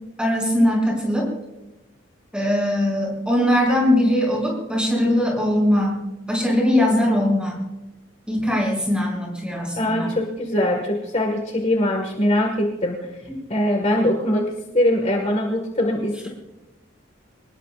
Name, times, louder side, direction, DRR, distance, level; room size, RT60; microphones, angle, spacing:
voice 1, 0.2-1.3 2.3-6.0 6.3-7.6 8.3-10.1, left 1 dB, 5° right, -1 dB, 5.9 m, -20 dB
voice 2, 9.8-13.1 13.5-16.3, left 1 dB, 35° left, 2 dB, 1.8 m, -22 dB
25.0 x 20.0 x 2.5 m, 1.0 s
head